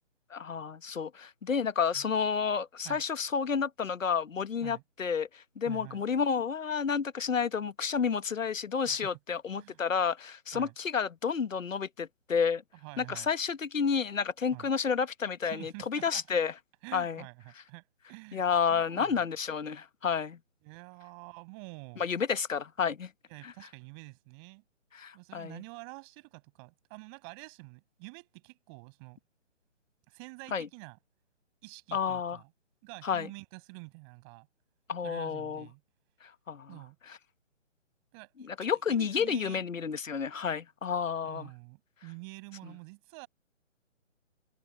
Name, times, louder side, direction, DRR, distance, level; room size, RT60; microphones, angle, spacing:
voice 1, 0.3-12.6 13.0-16.5 16.9-17.2 18.3-20.4 22.0-23.1 23.4-23.5 24.9-25.6 30.5-30.7 31.9-32.4 33.0-33.3 34.9-35.7 36.2-36.8 37.1-37.2 38.4-41.5, left 6 dB, 90° left, 1.2 m, -30 dB
voice 2, 5.6-6.0 8.8-9.2 9.5-9.8 10.5-10.7 12.8-13.3 14.5-14.7 15.4-16.2 16.8-18.4 18.7-19.3 20.6-22.1 23.3-24.6 25.1-29.2 30.1-31.0 31.6-32.5 32.8-34.5 35.0-35.8 36.7-37.0 38.1-39.7 41.2-43.3, right 33 dB, 20° right, 6.0 m, -48 dB
hypercardioid pair, 160°, 38 cm